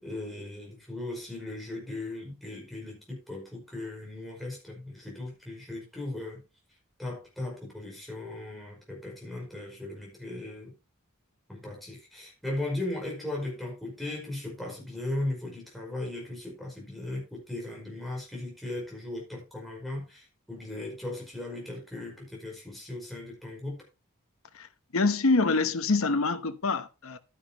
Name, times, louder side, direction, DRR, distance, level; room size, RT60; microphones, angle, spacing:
voice 1, 0.0-6.4 7.0-10.7 11.5-23.8, left 2 dB, ahead, 5.1 m, -37 dB
voice 2, 24.9-27.2, left 3 dB, 65° left, 0.9 m, -25 dB
12.0 x 9.7 x 2.9 m
head